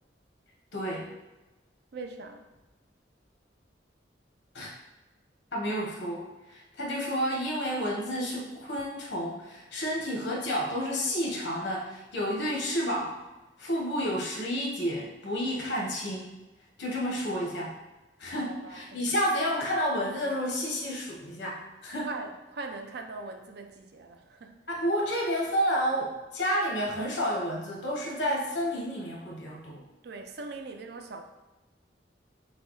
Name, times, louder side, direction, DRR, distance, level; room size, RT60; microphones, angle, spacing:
voice 1, 0.7-1.1 4.5-4.7 5.5-13.2 13.6-16.4 16.8-17.7 18.2-22.1 24.7-29.8, equal, 85° left, -3 dB, 1.2 m, -30 dB
voice 2, 1.9-2.4 18.3-19.0 22.0-24.5 30.0-31.2, right 3 dB, 65° right, 5 dB, 0.5 m, -41 dB
6.0 x 2.3 x 3.2 m, 1.1 s
head